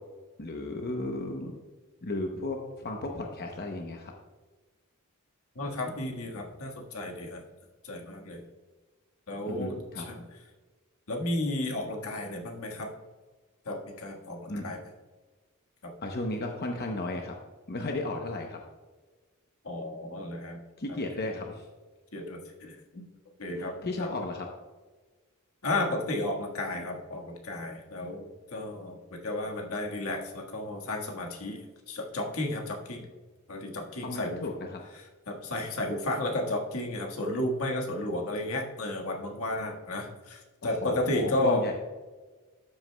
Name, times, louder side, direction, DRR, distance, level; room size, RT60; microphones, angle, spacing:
voice 1, 0.4-1.6 2.0-2.6 2.8-4.1 9.5-10.0 14.5-14.7 16.0-17.4 17.7-18.6 20.8-21.7 23.6-24.5 34.0-34.8 40.8-41.7, left 2 dB, 45° left, 2 dB, 0.8 m, -34 dB
voice 2, 5.5-7.4 7.8-8.4 9.3-10.2 11.1-12.9 13.6-14.8 15.8-15.9 19.6-20.6 20.9-21.0 22.1-23.0 23.4-24.1 25.6-33.1 33.5-34.4 35.3-41.6, left 1 dB, 80° left, 1 dB, 1.5 m, -33 dB
13.0 x 7.9 x 2.2 m, 1.3 s
head